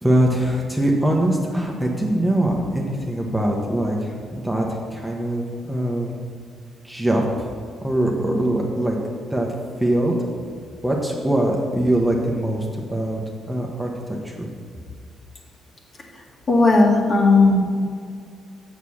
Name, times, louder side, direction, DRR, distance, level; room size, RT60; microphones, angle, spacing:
voice 1, 0.0-4.7 4.9-6.1 6.8-7.5 7.8-9.0 9.3-9.5 9.8-10.1 10.8-12.7 12.9-13.2 13.5-13.9 14.2-14.5, right 1 dB, 5° right, -1 dB, 1.2 m, -22 dB
voice 2, 16.5-17.6, left 3 dB, 45° left, -2 dB, 2.0 m, -15 dB
7.2 x 6.6 x 6.4 m, 2.1 s
cardioid pair, 90°, 0 cm